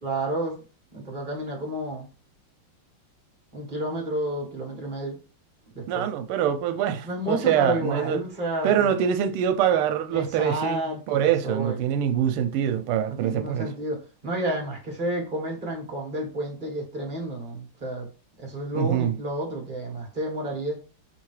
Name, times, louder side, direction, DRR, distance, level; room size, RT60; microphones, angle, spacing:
voice 1, 0.0-0.6 0.9-2.1 3.5-5.2 5.7-6.1 7.0-8.9 10.1-11.8 13.1-18.1 18.4-20.8, right 1 dB, 25° right, 1.3 m, -30 dB
voice 2, 5.9-8.2 8.6-13.7 18.7-19.1, right 9 dB, 85° right, 1.6 m, -24 dB
4.4 x 3.7 x 3.2 m
omnidirectional pair, 2.4 m